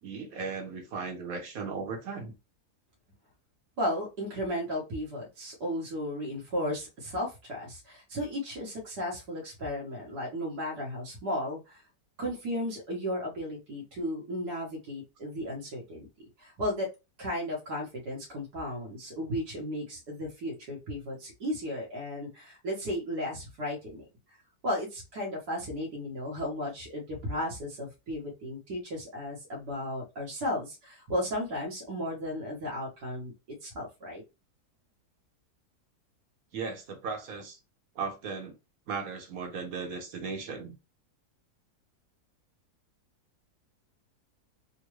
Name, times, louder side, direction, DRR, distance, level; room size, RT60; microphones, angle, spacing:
voice 1, 0.0-2.3 36.5-37.6 37.9-38.5 38.9-40.7, right 5 dB, 65° right, 1.3 m, -36 dB
voice 2, 3.8-11.8 12.2-16.1 16.4-16.9 17.2-24.1 24.6-33.3 33.6-34.2, left 1 dB, 80° right, 1.7 m, -34 dB
3.7 x 2.2 x 3.0 m
omnidirectional pair, 1.7 m